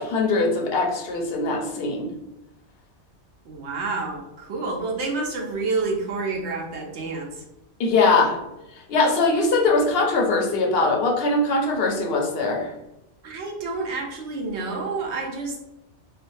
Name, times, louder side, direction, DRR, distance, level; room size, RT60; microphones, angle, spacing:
voice 1, 0.0-2.1 7.8-8.4 8.9-12.7, left 3 dB, 65° left, 1 dB, 0.8 m, -21 dB
voice 2, 3.4-7.4 13.2-15.6, right 3 dB, 75° right, 0 dB, 1.0 m, -29 dB
3.5 x 2.2 x 2.6 m, 0.90 s
omnidirectional pair, 1.2 m